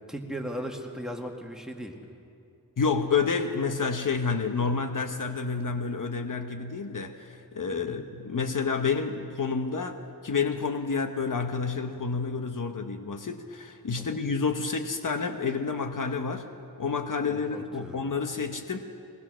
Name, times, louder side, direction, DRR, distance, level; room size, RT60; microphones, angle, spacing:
voice 1, 0.1-1.9 7.7-8.0 14.0-14.3 17.2-18.0, equal, ahead, 2 dB, 2.0 m, -38 dB
voice 2, 2.8-16.5 16.8-18.9, left 5 dB, 60° left, 6 dB, 1.1 m, -29 dB
22.5 x 19.0 x 6.3 m, 2.6 s
wide cardioid pair, 90°, 36 cm